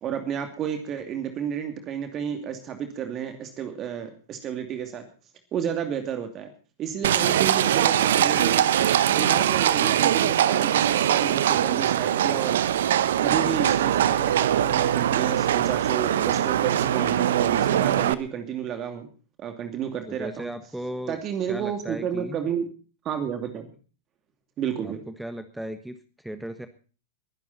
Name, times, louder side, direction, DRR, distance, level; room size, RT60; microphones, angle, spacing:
voice 1, 0.0-5.0 5.5-6.5 6.8-8.7 9.1-12.6 13.2-19.1 19.4-20.5 21.1-22.7 23.0-23.7 24.6-25.0, right 8 dB, 30° right, 7 dB, 2.6 m, -31 dB
Livestock farm animals working animals, 7.0-18.1, right 10 dB, 65° right, 0.9 m, -22 dB
voice 2, 20.1-21.2 21.5-22.4 24.8-26.7, right 1 dB, 5° right, 10 dB, 1.3 m, -36 dB
22.0 x 11.0 x 4.1 m, 0.38 s
figure-of-eight pair, 95°, 0 cm